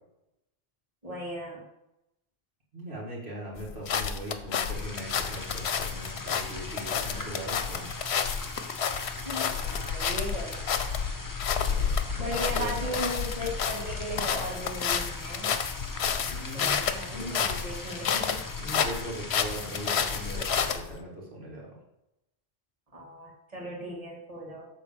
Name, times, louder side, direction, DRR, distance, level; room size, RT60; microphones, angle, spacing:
voice 1, 1.0-1.6 9.2-10.6 12.2-15.6 16.5-18.4 22.9-24.7, equal, 35° right, -4 dB, 2.3 m, -37 dB
voice 2, 2.7-7.9 11.6-13.0 16.2-17.7 18.6-21.7, right 1 dB, 75° right, -3 dB, 2.2 m, -40 dB
sound 1, 3.6-21.0, left 7 dB, 80° left, 1.0 m, -30 dB
sound 2, 4.7-20.7, left 2 dB, 20° left, 0.8 m, -40 dB
9.1 x 3.8 x 6.8 m, 0.89 s
omnidirectional pair, 1.1 m